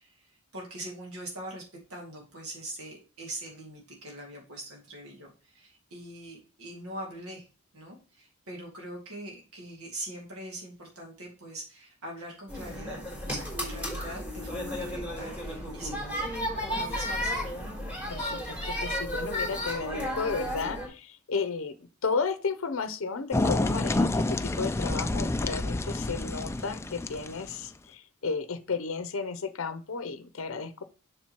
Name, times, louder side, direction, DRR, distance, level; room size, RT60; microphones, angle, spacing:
voice 1, 0.0-1.6 1.9-7.5 7.7-16.3 16.7-17.8, right 1 dB, 80° right, -1 dB, 2.3 m, -42 dB
sound 1, 12.5-20.9, equal, 10° right, 3.5 m, -33 dB
voice 2, 18.1-30.8, left 4 dB, 70° left, 11 dB, 0.6 m, -33 dB
sound 2, 23.3-27.7, left 2 dB, 10° left, 0.4 m, -28 dB
7.3 x 6.6 x 3.0 m, 0.35 s
head